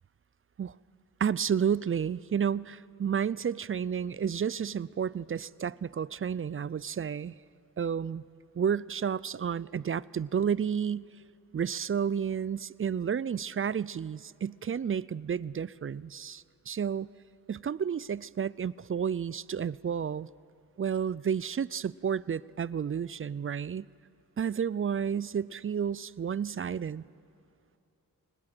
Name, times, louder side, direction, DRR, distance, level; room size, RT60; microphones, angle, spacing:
voice 1, 1.2-7.3 7.8-8.3 8.6-11.1 11.5-17.1 17.5-20.3 20.8-23.9 24.4-27.0, right 7 dB, 35° right, 21 dB, 0.4 m, -31 dB
22.5 x 20.0 x 7.7 m, 2.8 s
cardioid pair, 45°, 37 cm